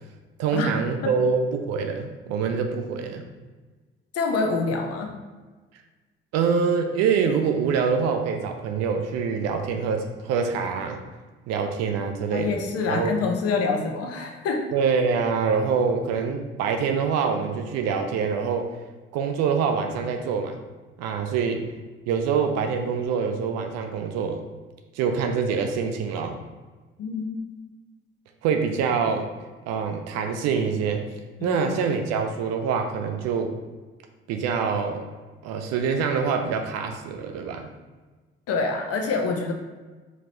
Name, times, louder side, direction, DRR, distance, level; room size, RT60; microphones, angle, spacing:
voice 1, 0.4-3.2 6.3-11.0 11.5-12.6 12.9-13.1 14.7-18.7 19.1-20.6 21.0-21.7 22.1-24.4 24.9-26.4 28.4-29.3 29.7-31.0 31.4-33.6 34.3-35.1 35.4-37.7, right 6 dB, 60° right, 5 dB, 0.6 m, -25 dB
voice 2, 4.1-5.1 12.3-14.7 27.0-27.3 31.4-31.7 38.5-39.5, left 4 dB, 50° left, 2 dB, 0.9 m, -26 dB
4.6 x 3.9 x 3.0 m, 1.3 s
figure-of-eight pair, 45°, 30 cm